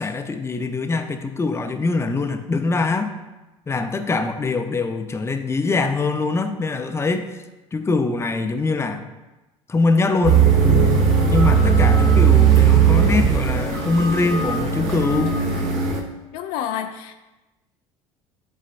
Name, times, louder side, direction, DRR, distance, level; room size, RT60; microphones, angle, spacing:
voice 1, 0.0-3.1 3.7-7.3 7.7-9.0 9.7-10.4 11.1-15.4, left 3 dB, 15° left, 7 dB, 0.6 m, -23 dB
sound 1, 10.2-16.0, right 6 dB, 50° right, 1.3 m, -17 dB
voice 2, 16.3-17.1, left 10 dB, 60° left, 7 dB, 0.5 m, -28 dB
11.0 x 4.2 x 2.6 m, 1.1 s
figure-of-eight pair, 65°, 16 cm